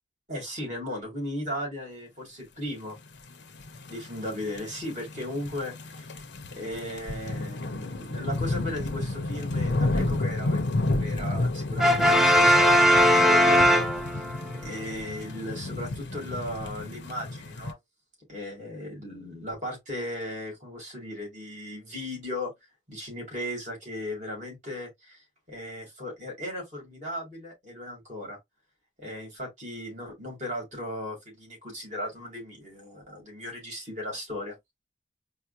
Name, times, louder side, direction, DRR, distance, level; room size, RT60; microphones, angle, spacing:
voice 1, 0.3-3.0 3.9-6.1 6.6-13.9 14.2-14.3 14.6-17.7 18.3-22.5 22.9-25.2 25.5-28.4 29.0-34.5, left 1 dB, 40° right, 2.7 m, -36 dB
sound 1, 3.4-17.7, left 2 dB, 75° left, 0.7 m, -31 dB
Brass instrument, 11.8-14.5, equal, ahead, 0.4 m, -19 dB
4.7 x 2.1 x 2.7 m
head